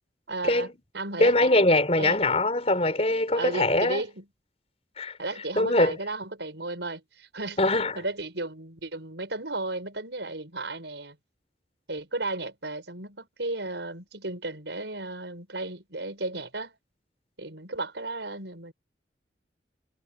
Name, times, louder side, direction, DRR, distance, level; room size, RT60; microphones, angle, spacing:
voice 1, 0.3-1.5 2.0-2.2 3.4-4.3 5.2-7.6 8.0-11.2 11.9-16.7 17.4-18.7, right 2 dB, 90° right, 6.1 m, -34 dB
voice 2, 1.2-4.0 5.0-5.2 5.5-5.9 7.6-8.0, left 2 dB, 35° left, 5.0 m, -22 dB
head